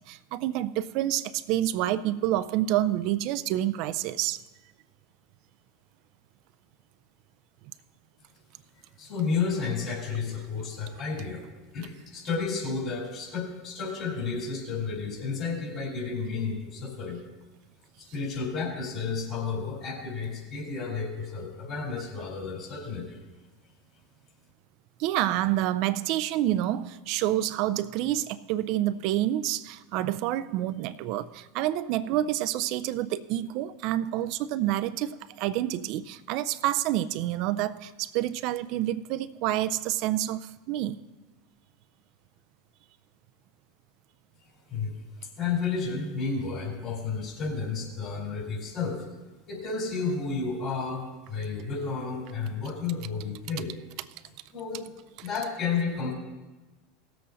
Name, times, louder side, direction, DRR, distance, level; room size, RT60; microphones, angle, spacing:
voice 1, 0.0-4.4 25.0-41.0 55.2-55.3, right 13 dB, 60° right, 14 dB, 0.4 m, -28 dB
voice 2, 9.0-11.5 11.7-17.2 18.0-23.2 44.7-45.0 45.4-49.1 49.5-51.0 51.3-53.7 54.5-54.9 55.2-56.1, left 5 dB, 45° left, 0 dB, 4.0 m, -32 dB
17.5 x 7.7 x 4.0 m, 1.2 s
hypercardioid pair, 95°, 0 cm